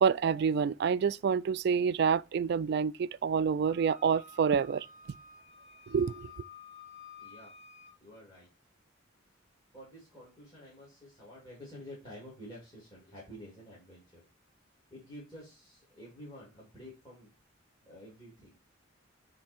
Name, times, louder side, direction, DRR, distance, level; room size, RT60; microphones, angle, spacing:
voice 1, 0.0-4.9 5.9-6.3, right 6 dB, 55° right, 0.3 m, -27 dB
Wind instrument woodwind instrument, 3.7-8.0, left 5 dB, 55° left, 1.2 m, -52 dB
voice 2, 7.2-7.6 8.0-8.5 9.7-14.2 14.9-17.3 17.8-18.6, equal, 20° left, 2.8 m, -50 dB
8.4 x 3.4 x 4.4 m
head